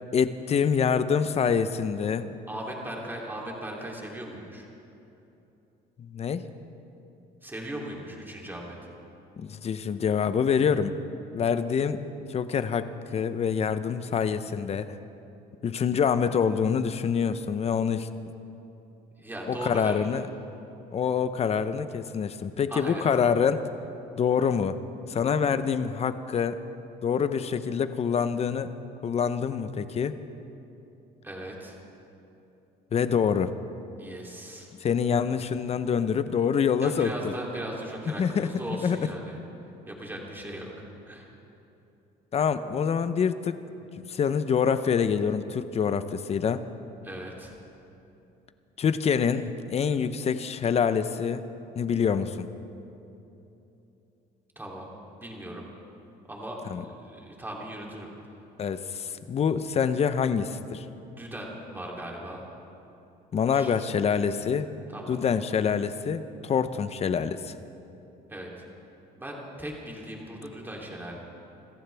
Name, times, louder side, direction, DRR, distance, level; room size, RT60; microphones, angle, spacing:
voice 1, 0.1-2.3 6.0-6.5 9.4-11.0 11.3-12.0 12.3-14.9 15.6-18.1 19.5-20.3 20.9-23.6 24.2-24.8 25.1-26.6 27.0-28.7 29.0-30.2 32.9-33.5 34.8-37.3 38.2-39.1 42.3-43.6 44.1-46.6 48.8-51.5 51.8-52.5 56.7-56.8 58.6-60.8 63.3-64.7 65.1-67.5, left 7 dB, 40° left, 12 dB, 0.7 m, -26 dB
voice 2, 2.5-4.7 7.4-8.8 19.2-20.1 22.7-23.1 31.2-31.8 34.0-34.7 36.8-39.4 39.9-40.7 41.1-41.3 47.0-47.5 54.5-54.9 55.2-55.7 56.3-58.1 61.1-62.5 63.5-63.7 64.9-65.2 68.3-68.6 69.2-71.2, right 1 dB, 10° right, -2 dB, 3.1 m, -38 dB
27.0 x 14.5 x 3.5 m, 2.9 s
cardioid pair, 110°, 17 cm